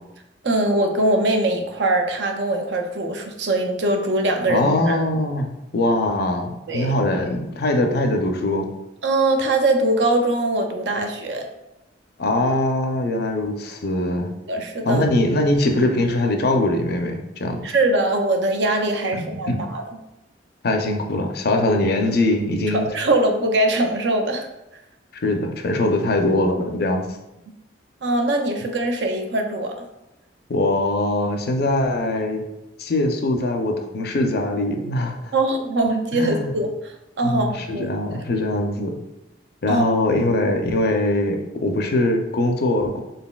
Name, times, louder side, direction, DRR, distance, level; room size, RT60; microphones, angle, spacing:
voice 1, 0.4-5.0 6.7-6.9 9.0-11.5 14.5-15.0 17.6-19.8 22.7-24.5 28.0-29.8 35.3-37.9 39.7-39.8, right 2 dB, 65° right, 4 dB, 0.5 m, -22 dB
voice 2, 4.5-8.7 12.2-14.3 14.9-17.6 19.1-19.6 20.6-22.9 25.2-27.1 30.5-32.4 32.8-35.3 36.1-36.5 37.2-39.0 39.6-43.0, left 1 dB, 60° left, 4 dB, 0.5 m, -22 dB
4.0 x 3.8 x 2.3 m, 0.92 s
head